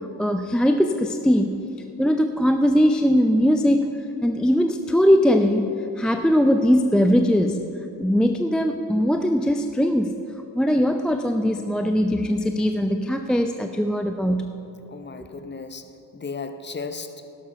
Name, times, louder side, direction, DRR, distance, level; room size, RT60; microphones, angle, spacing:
voice 1, 0.2-1.6 2.0-3.9 4.2-7.6 8.0-10.2 10.5-14.5, equal, ahead, 6 dB, 0.4 m, -20 dB
voice 2, 14.9-17.3, left 4 dB, 20° left, 10 dB, 0.9 m, -35 dB
12.0 x 10.5 x 5.6 m, 2.8 s
figure-of-eight pair, 40°, 49 cm